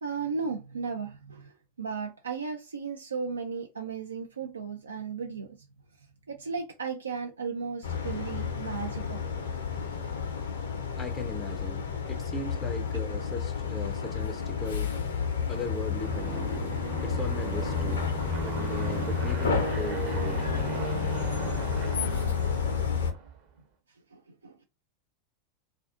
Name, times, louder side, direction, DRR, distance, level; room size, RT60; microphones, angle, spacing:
voice 1, 0.0-5.6 6.3-9.2 24.1-24.5, right 5 dB, 75° right, 0.4 m, -35 dB
sound 1, 7.8-23.1, left 6 dB, 70° left, 0.6 m, -31 dB
voice 2, 11.0-14.9 15.5-16.7 17.0-18.1 18.4-20.6, left 2 dB, 20° left, 0.4 m, -38 dB
Aircraft, 16.0-23.4, right 4 dB, 45° right, 0.8 m, -36 dB
2.4 x 2.3 x 2.4 m
figure-of-eight pair, 85°, 0 cm